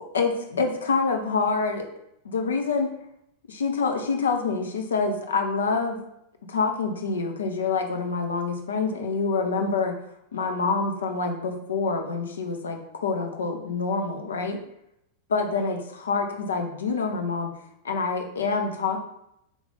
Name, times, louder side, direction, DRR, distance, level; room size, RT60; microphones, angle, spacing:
voice 1, 0.1-1.9 2.2-2.9 3.5-6.0 6.5-9.9 10.3-14.6 15.3-17.5 17.8-19.0, left 4 dB, 65° left, 4 dB, 0.7 m, -26 dB
3.8 x 3.1 x 3.9 m, 0.78 s
figure-of-eight pair, 90°, 0 cm